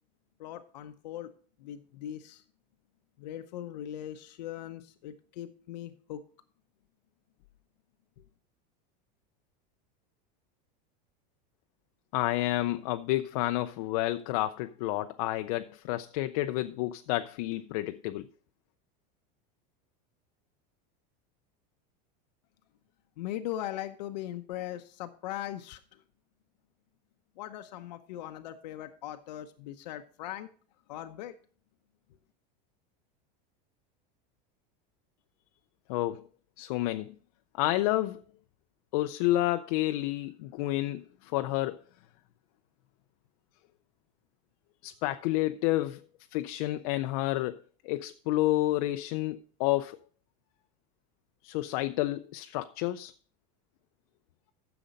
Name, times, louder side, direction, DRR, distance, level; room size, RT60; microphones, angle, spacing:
voice 1, 0.4-1.3 1.6-2.4 3.2-6.2 23.2-26.0 27.4-30.5 30.9-31.3, left 12 dB, 85° left, 0.8 m, -39 dB
voice 2, 12.1-18.3 35.9-36.3 36.6-37.1 37.5-38.2 38.9-41.8 44.8-46.1 46.3-50.0 51.4-53.1, left 16 dB, 60° left, 0.5 m, -30 dB
10.0 x 6.9 x 5.2 m
supercardioid pair, 155°, 21 cm